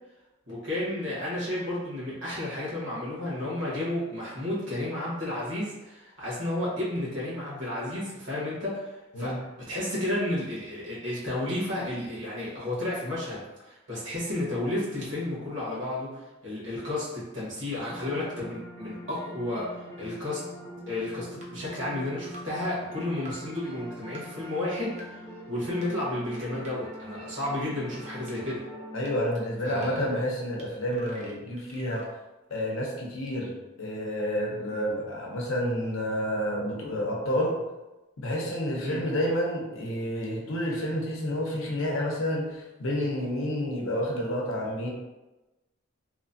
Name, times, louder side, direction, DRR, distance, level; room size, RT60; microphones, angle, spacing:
voice 1, 0.5-9.3 9.7-19.7 20.0-20.4 20.9-28.6 29.6-30.0 38.8-39.0, left 1 dB, 65° right, -7 dB, 1.3 m, -32 dB
sound 1, 17.9-29.2, equal, 15° left, 0.5 m, -43 dB
sound 2, 20.4-20.5 21.4-21.5 22.3-22.4 23.3-23.4 24.1-24.2 25.0-25.1 25.8-25.9 26.6-26.7 27.5-27.6 28.3-28.4 29.1-29.2 29.8-29.9 30.6-30.7 30.9-32.1, right 1 dB, 35° right, 0.5 m, -46 dB
voice 2, 28.9-32.1 32.5-37.6 38.2-44.9, equal, 80° left, -1 dB, 0.6 m, -29 dB
3.0 x 2.1 x 2.6 m, 1.0 s
head